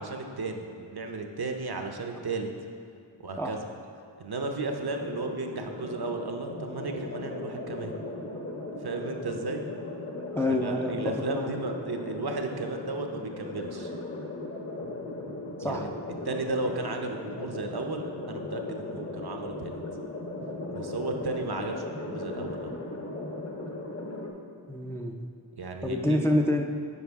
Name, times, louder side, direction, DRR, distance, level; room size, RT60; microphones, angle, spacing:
voice 1, 0.0-2.5 3.2-3.7 4.2-7.9 8.8-9.6 10.6-13.9 15.6-15.9 16.2-19.8 20.7-22.8 25.6-26.3, right 3 dB, 55° right, 4 dB, 0.7 m, -34 dB
sound 1, 4.8-24.3, left 2 dB, 35° left, 0.9 m, -37 dB
voice 2, 10.3-11.5 15.6-15.8 24.7-25.2 25.8-26.6, left 1 dB, 5° left, 2 dB, 0.4 m, -27 dB
9.5 x 4.8 x 3.5 m, 2.3 s
wide cardioid pair, 50°, 46 cm